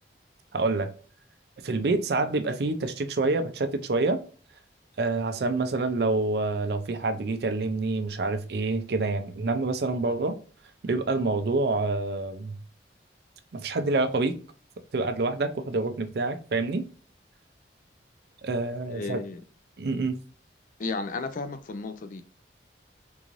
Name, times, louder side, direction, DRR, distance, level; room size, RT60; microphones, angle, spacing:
voice 1, 0.5-0.9 1.6-4.2 5.0-10.4 10.8-12.6 13.5-14.4 14.9-16.8 18.4-19.2 19.8-20.2, right 3 dB, 60° right, 0.4 m, -27 dB
voice 2, 18.9-19.4 20.8-22.2, left 3 dB, 45° left, 0.4 m, -33 dB
3.8 x 2.5 x 3.0 m
head